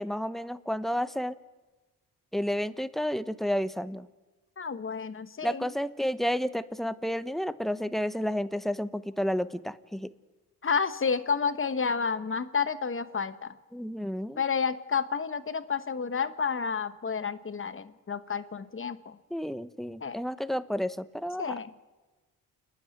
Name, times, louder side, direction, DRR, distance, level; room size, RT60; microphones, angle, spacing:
voice 1, 0.0-1.4 2.3-4.1 5.4-10.1 13.7-14.4 19.3-21.6, equal, ahead, 14 dB, 0.9 m, -31 dB
voice 2, 4.6-5.7 10.6-13.5 14.4-19.2 20.0-20.2 21.4-21.7, left 5 dB, 35° left, 11 dB, 1.3 m, -30 dB
29.0 x 10.0 x 9.6 m, 1.2 s
cardioid pair, 70°, 36 cm